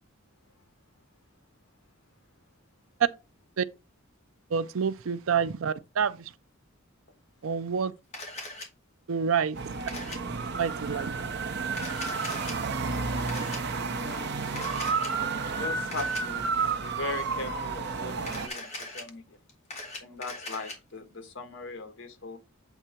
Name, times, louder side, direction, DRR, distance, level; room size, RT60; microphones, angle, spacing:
voice 1, 4.5-6.2 7.4-7.9 9.1-9.7 10.6-11.1, right 6 dB, 75° right, 0.5 m, -28 dB
Camera, 8.1-8.7 9.9-10.2 11.7-12.5 13.3-13.6 14.6-15.1 15.9-16.2 18.2-19.0 19.5-20.7, left 2 dB, 35° left, 2.2 m, -39 dB
sound 1, 9.5-18.5, right 4 dB, 55° right, 0.9 m, -31 dB
voice 2, 13.9-14.3 15.5-19.4 20.0-22.4, left 3 dB, 65° left, 1.4 m, -39 dB
8.0 x 3.6 x 4.4 m
head